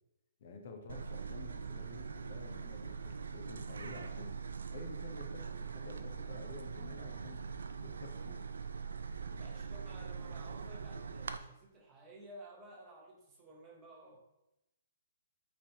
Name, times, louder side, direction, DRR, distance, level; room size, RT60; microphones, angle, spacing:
voice 1, 0.4-4.4 4.7-7.5 7.8-8.5, left 3 dB, 50° left, 4 dB, 0.8 m, -50 dB
sound 1, 0.9-11.4, right 5 dB, 90° right, 0.3 m, -42 dB
voice 2, 9.3-14.2, right 1 dB, 15° right, 0 dB, 0.8 m, -54 dB
5.2 x 3.4 x 2.8 m, 0.91 s
hypercardioid pair, 160°, 0 cm